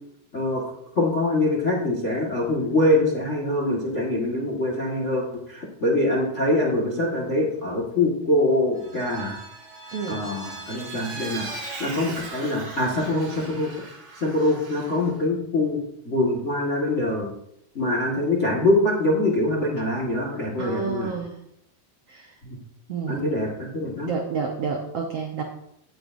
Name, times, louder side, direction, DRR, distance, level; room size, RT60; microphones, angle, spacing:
voice 1, 0.3-0.6 0.9-9.4 10.1-11.5 11.8-13.7 14.1-15.8 16.0-17.3 17.7-21.1 22.4-22.6 23.1-24.1, left 1 dB, 60° left, -2 dB, 0.7 m, -24 dB
Vehicle, 8.7-15.1, right 3 dB, 45° right, 1.9 m, -39 dB
voice 2, 9.9-10.2 20.6-21.4 22.1-22.3 22.9-23.3 24.1-25.4, right 5 dB, 85° right, 1 dB, 1.3 m, -29 dB
18.0 x 6.8 x 2.6 m, 0.77 s
omnidirectional pair, 4.2 m